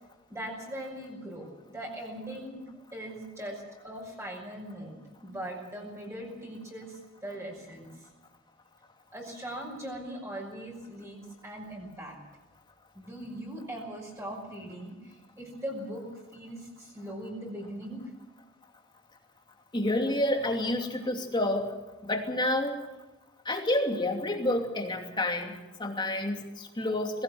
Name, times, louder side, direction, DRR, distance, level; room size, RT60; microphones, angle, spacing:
voice 1, 0.3-2.6 2.9-8.1 9.1-12.2 12.9-16.0 16.3-18.0, right 1 dB, 15° right, -1 dB, 5.9 m, -40 dB
voice 2, 19.7-21.7 22.0-22.8 23.4-27.2, left 1 dB, 25° left, 2 dB, 2.7 m, -29 dB
20.5 x 17.5 x 7.9 m, 1.1 s
head